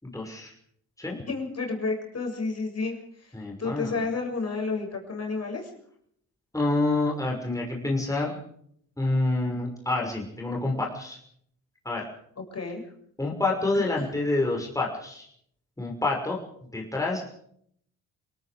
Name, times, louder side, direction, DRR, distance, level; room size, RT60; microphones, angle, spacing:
voice 1, 0.0-0.5 1.0-1.2 3.3-4.0 6.5-8.4 9.0-11.2 11.8-12.1 13.2-15.3 15.8-16.4 16.7-17.4, left 2 dB, 10° left, -1 dB, 5.9 m, -27 dB
voice 2, 1.3-5.7 12.5-12.8 13.7-14.1, left 3 dB, 35° left, 2 dB, 7.2 m, -31 dB
28.0 x 18.5 x 5.1 m, 0.67 s
hypercardioid pair, 50°, 42 cm